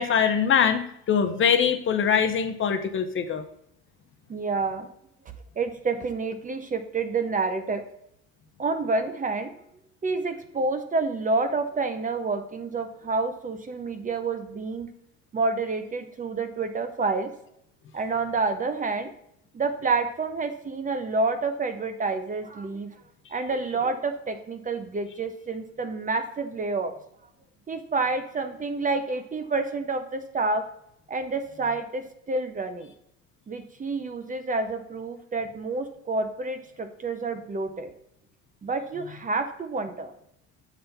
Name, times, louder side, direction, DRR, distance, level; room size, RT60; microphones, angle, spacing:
voice 1, 0.0-3.4, left 7 dB, 35° left, 6 dB, 0.7 m, -23 dB
voice 2, 4.3-4.9 5.6-7.8 8.6-9.5 10.0-14.9 15.3-17.3 17.9-19.1 19.5-22.9 23.3-26.9 27.7-30.6 31.1-32.9 33.5-37.9 38.6-40.1, right 3 dB, 25° right, 8 dB, 0.7 m, -28 dB
7.1 x 3.4 x 5.6 m, 0.74 s
supercardioid pair, 105°, 33 cm